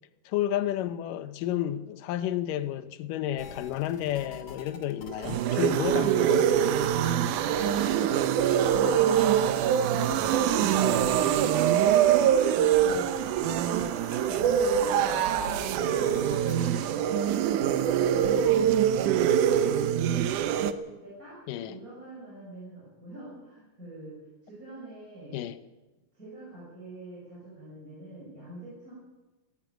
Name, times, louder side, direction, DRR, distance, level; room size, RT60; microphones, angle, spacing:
voice 1, 0.3-6.5 21.5-21.7 25.3-25.6, left 12 dB, 80° left, 2.5 m, -31 dB
sound 1, 3.4-16.9, left 4 dB, 55° left, 3.1 m, -46 dB
sound 2, 5.1-20.7, right 9 dB, 75° right, 2.2 m, -24 dB
voice 2, 12.7-17.6 20.1-25.4 26.1-28.9, right 2 dB, 25° right, 6.8 m, -46 dB
19.0 x 15.5 x 9.1 m
omnidirectional pair, 3.8 m